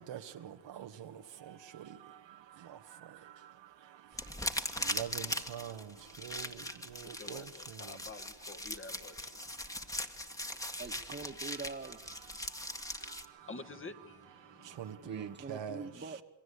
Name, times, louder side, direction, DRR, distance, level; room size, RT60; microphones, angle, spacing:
voice 1, 0.0-8.0 9.4-10.8 11.2-11.3 12.3-13.5 14.4-15.9, right 9 dB, 80° right, 2.1 m, -47 dB
sound 1, 4.1-13.2, left 1 dB, 10° left, 1.9 m, -40 dB
voice 2, 7.8-9.1 13.5-13.9, left 3 dB, 30° left, 2.1 m, -46 dB
voice 3, 10.8-12.1 15.0-16.2, right 4 dB, 25° right, 1.9 m, -44 dB
28.0 x 22.5 x 8.6 m
cardioid pair, 120°, 43 cm